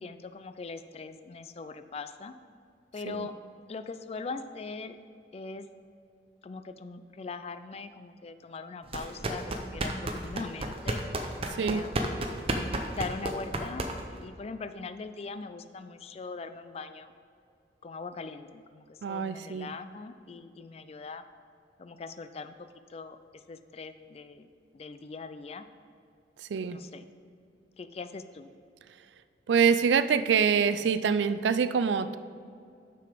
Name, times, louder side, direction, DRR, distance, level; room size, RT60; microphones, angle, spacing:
voice 1, 0.0-2.3 2.9-3.3 3.7-5.0 5.3-5.7 6.4-11.0 11.6-12.3 12.8-17.1 17.8-21.2 21.8-22.5 22.9-23.2 23.5-24.5 24.7-25.7 26.7-27.1 27.8-28.5, left 4 dB, 35° left, 11 dB, 0.3 m, -41 dB
sound 1, 8.9-14.2, right 1 dB, 35° right, 0.7 m, -32 dB
voice 2, 19.0-19.7 26.5-26.8 29.5-32.2, right 6 dB, 85° right, 13 dB, 0.4 m, -25 dB
6.8 x 6.5 x 5.0 m, 2.4 s
head